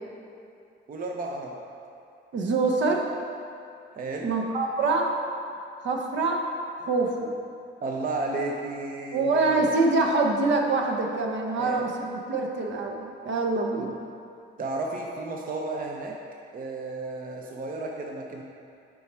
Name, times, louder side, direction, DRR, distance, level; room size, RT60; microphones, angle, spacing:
voice 1, 0.9-1.6 3.9-4.4 7.8-9.7 11.5-11.9 13.7-13.9 14.6-16.2 16.5-18.4, right 2 dB, 45° right, 1 dB, 0.7 m, -33 dB
voice 2, 2.3-3.1 4.2-5.1 5.8-6.4 6.8-7.3 9.1-14.0, right 3 dB, 70° right, 1 dB, 0.9 m, -25 dB
7.8 x 4.8 x 4.3 m, 2.5 s
cardioid pair, 90°, 20 cm